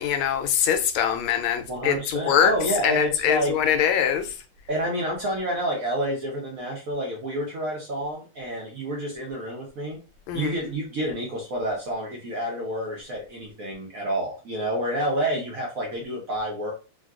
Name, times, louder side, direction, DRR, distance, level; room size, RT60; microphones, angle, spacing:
voice 1, 0.0-2.5 2.8-4.4 10.3-10.5, left 9 dB, 85° left, 1.4 m, -23 dB
voice 2, 1.7-3.5 4.7-10.0 10.3-16.7, right 1 dB, 60° right, 1.0 m, -29 dB
3.7 x 2.3 x 2.4 m
omnidirectional pair, 2.2 m